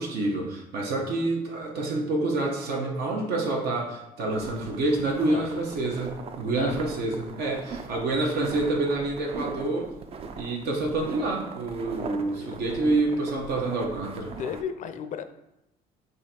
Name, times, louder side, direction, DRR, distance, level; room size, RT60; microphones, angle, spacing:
voice 1, 0.0-9.9 10.4-14.3, right 2 dB, 75° right, 0 dB, 0.8 m, -27 dB
sound 1, 4.3-14.6, right 4 dB, 35° right, 0.4 m, -41 dB
voice 2, 14.4-15.2, left 8 dB, 45° left, 10 dB, 0.4 m, -34 dB
3.8 x 2.6 x 4.2 m, 0.88 s
cardioid pair, 110°, 17 cm